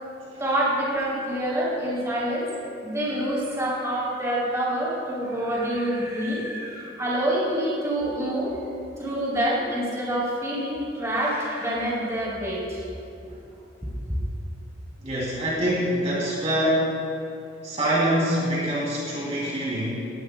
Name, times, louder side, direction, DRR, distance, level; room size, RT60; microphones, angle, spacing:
voice 1, 0.4-2.5 2.8-8.6 9.0-12.8 13.2-13.3 13.8-13.9, right 1 dB, 15° right, -6 dB, 3.0 m, -27 dB
voice 2, 15.0-16.9 17.6-20.1, equal, 35° right, -7 dB, 2.7 m, -25 dB
18.5 x 15.0 x 2.2 m, 2.5 s
head